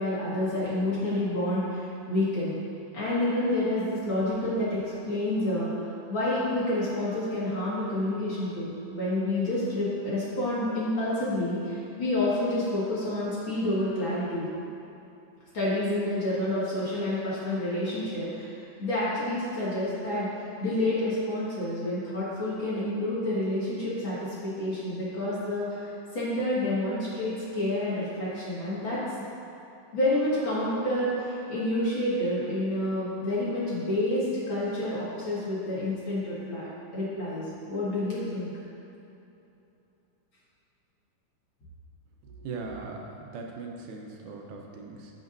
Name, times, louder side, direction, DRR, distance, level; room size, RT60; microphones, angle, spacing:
voice 1, 0.0-2.5 2.9-5.8 6.1-14.5 15.5-29.0 29.9-36.7 36.9-38.5, left 1 dB, 40° left, -9 dB, 2.5 m, -29 dB
voice 2, 42.4-45.1, right 4 dB, 85° right, 0 dB, 2.4 m, -39 dB
15.0 x 6.2 x 2.7 m, 2.9 s
omnidirectional pair, 3.5 m